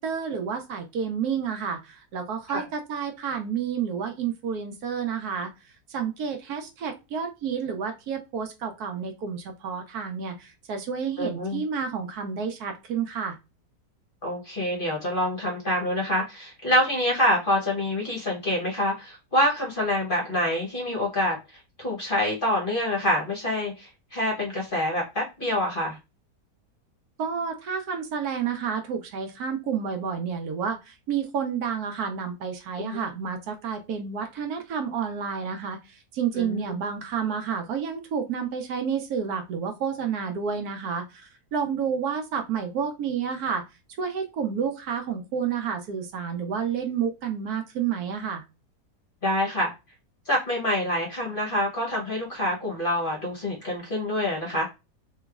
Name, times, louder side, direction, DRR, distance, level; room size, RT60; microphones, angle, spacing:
voice 1, 0.0-5.5 5.9-13.4 27.2-43.6 44.0-48.4, right 7 dB, 70° right, 5 dB, 1.1 m, -30 dB
voice 2, 11.2-11.6 14.2-21.4 21.8-26.0 32.8-33.1 36.4-36.6 49.2-49.7 50.3-54.7, left 1 dB, 40° left, -2 dB, 0.8 m, -26 dB
3.3 x 3.0 x 2.3 m, 0.26 s
omnidirectional pair, 1.8 m